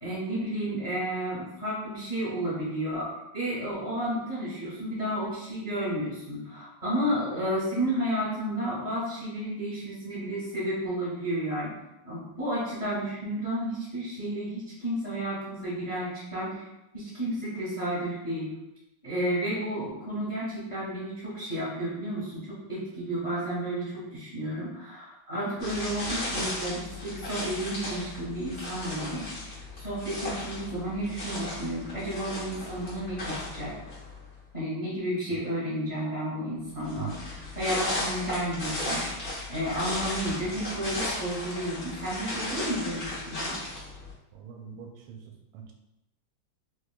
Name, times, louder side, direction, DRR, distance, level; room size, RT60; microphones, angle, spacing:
voice 1, 0.0-3.1 3.3-11.7 12.0-16.7 16.9-18.5 19.0-29.3 29.8-33.7 34.5-37.1 37.5-39.1 39.5-43.6, right 1 dB, 25° left, -8 dB, 0.8 m, -32 dB
sound 1, 25.6-34.2 36.8-44.1, left 2 dB, 40° left, 1.2 m, -35 dB
voice 2, 44.3-45.2 45.5-45.7, right 10 dB, 85° right, 2 dB, 1.5 m, -41 dB
4.6 x 2.3 x 2.2 m, 0.91 s
omnidirectional pair, 2.3 m